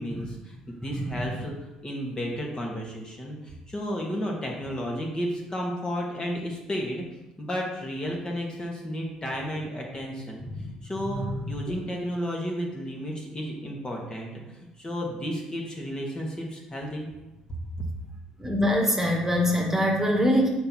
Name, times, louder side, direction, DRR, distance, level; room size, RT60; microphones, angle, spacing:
voice 1, 0.0-1.6 1.8-7.0 7.4-10.4 10.8-17.1, equal, 25° left, -1 dB, 1.9 m, -32 dB
voice 2, 18.4-20.5, equal, 15° right, -1 dB, 1.7 m, -23 dB
6.4 x 4.7 x 4.3 m, 0.99 s
hypercardioid pair, 55°, 3 cm